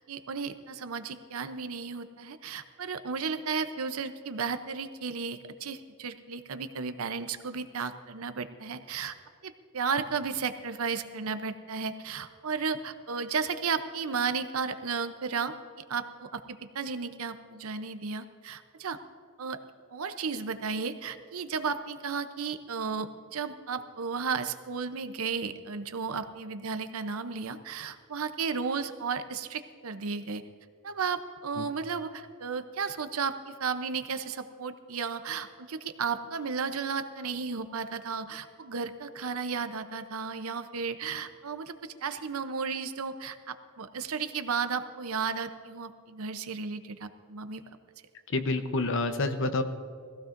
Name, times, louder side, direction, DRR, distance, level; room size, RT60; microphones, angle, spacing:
voice 1, 0.1-9.1 9.4-15.5 15.9-16.4 16.7-19.0 19.4-19.6 19.9-30.4 30.8-47.6, right 5 dB, 75° right, 10 dB, 0.7 m, -34 dB
voice 2, 48.3-49.6, left 2 dB, 60° left, 8 dB, 0.9 m, -28 dB
21.0 x 15.5 x 2.6 m, 2.1 s
head